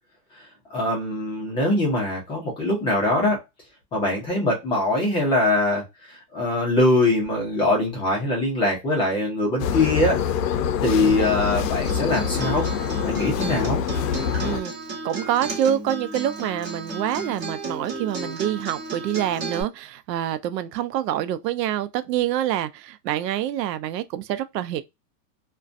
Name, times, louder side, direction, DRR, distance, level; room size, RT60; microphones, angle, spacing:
voice 1, 0.7-3.4 3.9-10.2 10.8-12.7 13.0-13.8, left 2 dB, 10° left, 0.4 m, -22 dB
sound 1, 9.6-14.6, left 8 dB, 75° left, 0.5 m, -25 dB
Acoustic guitar, 11.6-19.6, right 2 dB, 30° right, 1.2 m, -34 dB
voice 2, 14.4-14.7 15.0-24.8, right 11 dB, 85° right, 0.6 m, -26 dB
2.4 x 2.2 x 2.4 m
supercardioid pair, 145°, 48 cm